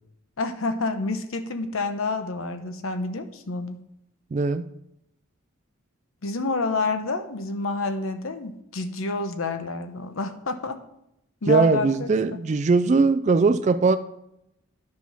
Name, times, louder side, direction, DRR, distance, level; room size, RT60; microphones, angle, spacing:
voice 1, 0.4-3.8 6.2-10.8 11.4-12.1, left 3 dB, 70° left, 9 dB, 0.9 m, -28 dB
voice 2, 4.3-4.6 11.5-14.0, right 4 dB, 35° right, 9 dB, 0.3 m, -20 dB
9.8 x 5.8 x 5.5 m, 0.80 s
head